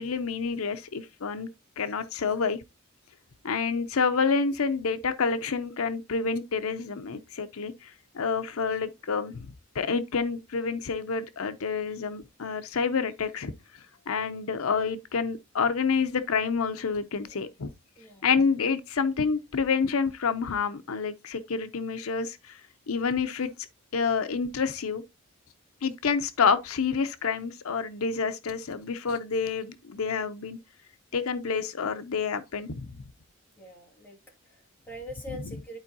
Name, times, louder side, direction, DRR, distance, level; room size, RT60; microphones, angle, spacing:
voice 1, 0.0-1.5 1.8-2.6 3.4-9.5 9.7-13.5 14.1-17.7 18.2-22.6 22.9-23.7 23.9-25.0 25.8-30.6 31.1-32.9, left 5 dB, 80° left, 0.6 m, -28 dB
voice 2, 18.0-18.3 33.6-35.8, equal, 10° left, 2.4 m, -44 dB
11.5 x 4.5 x 2.7 m
head